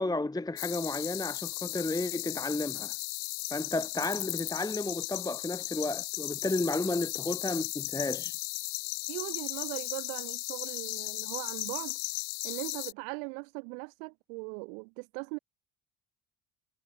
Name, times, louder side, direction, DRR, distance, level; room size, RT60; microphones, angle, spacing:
voice 1, 0.0-2.9 3.5-8.4, left 2 dB, 10° left, 1.1 m, -32 dB
sound 1, 0.6-12.9, left 40 dB or more, 75° left, 2.0 m, -36 dB
voice 2, 9.1-12.0 12.4-15.4, right 40 dB or more, 75° right, 4.4 m, -39 dB
hypercardioid pair, 60°, 42 cm